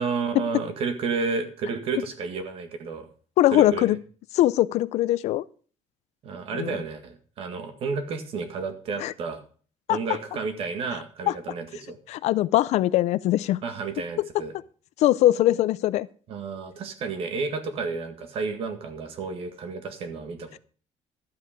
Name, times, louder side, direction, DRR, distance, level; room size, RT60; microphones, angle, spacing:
voice 1, 0.0-3.1 3.5-4.0 6.2-9.4 9.9-12.0 13.6-14.5 16.3-20.6, right 4 dB, 55° right, 8 dB, 1.9 m, -31 dB
voice 2, 3.4-4.0 4.3-5.4 6.5-6.7 9.0-9.1 9.9-10.0 11.3-11.4 12.1-13.6 14.2-14.4 15.0-16.1, left 14 dB, 70° left, 18 dB, 0.5 m, -21 dB
12.5 x 8.4 x 5.0 m, 0.41 s
cardioid pair, 175°, 12 cm